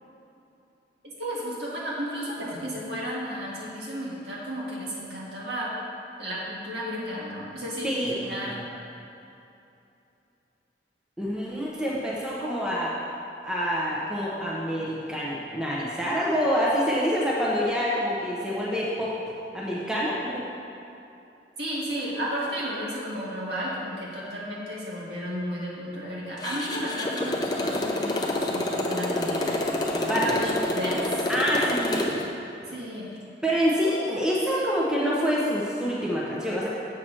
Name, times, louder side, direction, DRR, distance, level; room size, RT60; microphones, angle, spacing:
voice 1, 1.0-5.7 6.2-8.7 21.6-29.5 30.2-31.3 32.6-33.1, equal, 70° right, -6 dB, 1.9 m, -33 dB
voice 2, 7.8-8.1 11.2-12.9 13.4-19.1 19.5-20.5 30.0-30.4 31.3-32.1 33.4-36.7, equal, 5° right, -6 dB, 0.9 m, -26 dB
Motorcycle, 26.4-32.2, left 1 dB, 20° left, 0.6 m, -28 dB
7.5 x 4.9 x 6.1 m, 2.8 s
head